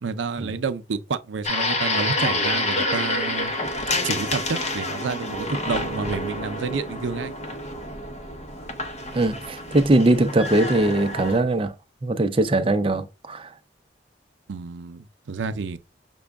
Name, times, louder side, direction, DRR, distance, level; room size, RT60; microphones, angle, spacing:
voice 1, 0.0-3.5 4.0-7.3 14.5-15.8, right 4 dB, 80° right, 0.5 m, -29 dB
sound 1, 1.4-11.4, left 2 dB, 35° left, 0.7 m, -28 dB
voice 2, 9.1-11.7 12.0-13.5, right 2 dB, 30° right, 0.5 m, -21 dB
6.1 x 2.3 x 3.4 m
head